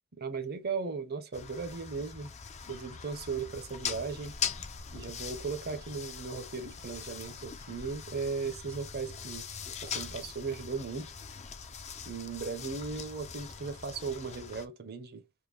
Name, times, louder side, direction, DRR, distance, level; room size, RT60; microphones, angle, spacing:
voice 1, 0.2-2.3 2.7-4.3 4.9-9.5 9.8-11.1 12.1-15.2, right 5 dB, 45° right, 0.7 m, -37 dB
sound 1, 1.3-14.7, left 7 dB, 30° left, 0.4 m, -41 dB
3.7 x 2.2 x 3.2 m
head